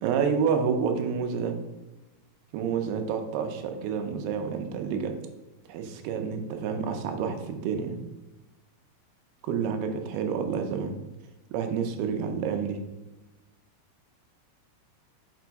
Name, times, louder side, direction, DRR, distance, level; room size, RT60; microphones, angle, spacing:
voice 1, 0.0-1.6 2.5-5.1 5.7-8.0 9.4-11.0 11.5-12.8, right 6 dB, 80° right, 6 dB, 2.6 m, -29 dB
6.1 x 4.8 x 4.6 m, 1.1 s
omnidirectional pair, 4.7 m